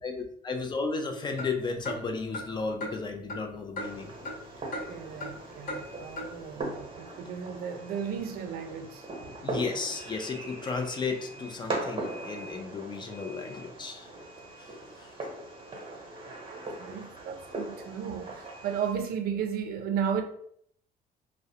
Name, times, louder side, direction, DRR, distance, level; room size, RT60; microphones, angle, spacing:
voice 1, 0.0-4.1 9.4-14.1 14.6-14.7 15.0-15.1, left 4 dB, 25° left, 0.4 m, -34 dB
sound 1, 1.3-4.5 4.7-5.4 5.7-5.8 6.2-6.3, left 1 dB, 55° left, 1.0 m, -38 dB
Fireworks, 3.8-18.9, right 2 dB, 30° right, 0.9 m, -40 dB
voice 2, 4.9-9.1 9.5-9.6 16.5-20.2, right 7 dB, 65° right, 0.4 m, -34 dB
2.3 x 2.0 x 2.7 m
cardioid pair, 110°, 17 cm